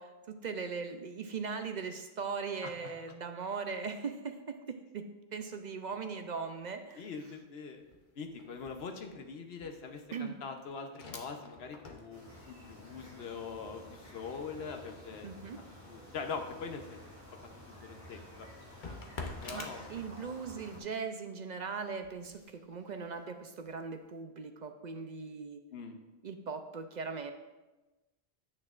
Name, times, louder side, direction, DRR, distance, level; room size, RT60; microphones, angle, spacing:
voice 1, 0.0-5.1 5.3-7.1 10.1-10.4 15.2-15.6 19.5-25.6 26.2-27.3, right 5 dB, 55° right, 7 dB, 0.6 m, -39 dB
voice 2, 2.6-2.9 7.0-7.8 8.1-15.3 15.8-17.2 17.8-18.5 19.4-19.9 25.7-25.9, left 5 dB, 75° left, 5 dB, 1.1 m, -43 dB
sound 1, 5.6-5.9 6.2-20.6 21.0-24.1, left 3 dB, 50° left, 1.0 m, -51 dB
sound 2, 12.1-20.8, left 1 dB, 15° right, 2.7 m, -52 dB
9.7 x 8.5 x 2.4 m, 1.1 s
omnidirectional pair, 1.1 m